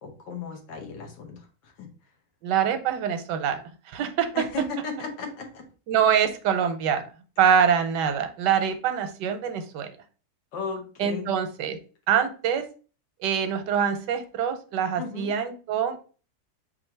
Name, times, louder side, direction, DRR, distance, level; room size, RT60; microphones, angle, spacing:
voice 1, 0.0-1.9 4.3-5.7 10.5-11.4 15.0-15.3, left 4 dB, 85° left, 3 dB, 1.7 m, -35 dB
voice 2, 2.4-3.6 3.9-4.3 5.9-7.0 7.4-9.9 11.0-11.8 12.1-12.6 13.2-16.0, right 8 dB, 85° right, 8 dB, 1.3 m, -24 dB
4.3 x 2.5 x 4.4 m, 0.37 s
omnidirectional pair, 1.9 m